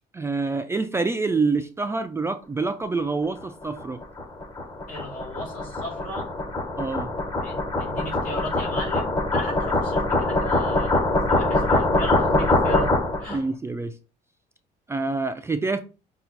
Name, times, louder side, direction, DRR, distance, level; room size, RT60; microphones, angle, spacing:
voice 1, 0.1-4.0 6.8-7.1 13.3-13.9 14.9-15.8, right 3 dB, 15° right, 0.3 m, -26 dB
sound 1, 3.4-13.4, left 2 dB, 25° left, 0.9 m, -24 dB
voice 2, 4.9-6.3 7.4-12.9 13.2-13.4, left 1 dB, 55° left, 2.6 m, -35 dB
5.7 x 2.4 x 3.9 m
cardioid pair, 110°, 17 cm